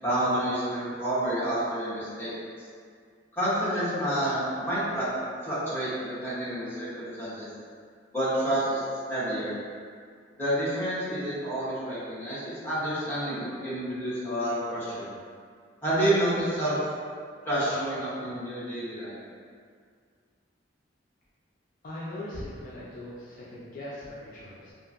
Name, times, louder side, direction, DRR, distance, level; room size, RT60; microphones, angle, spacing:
voice 1, 0.0-2.3 3.3-5.1 5.4-7.5 8.1-8.8 9.1-9.5 10.4-15.1 15.8-16.8 17.4-19.1, right 1 dB, 10° left, -12 dB, 1.0 m, -29 dB
voice 2, 21.8-24.7, left 1 dB, 50° left, -8 dB, 0.4 m, -40 dB
2.8 x 2.5 x 2.5 m, 2.1 s
head